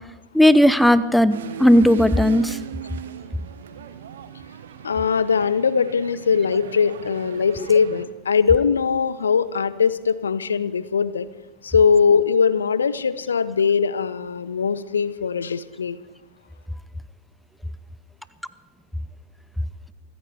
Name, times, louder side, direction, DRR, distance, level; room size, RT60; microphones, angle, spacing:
voice 1, 0.3-2.6, equal, ahead, 15 dB, 0.6 m, -16 dB
sound 1, 1.3-8.1, right 8 dB, 60° right, 0.9 m, -38 dB
voice 2, 4.8-11.3 11.6-16.0, left 6 dB, 70° left, 17 dB, 0.6 m, -21 dB
26.5 x 14.0 x 3.5 m, 1.2 s
figure-of-eight pair, 90°, 0 cm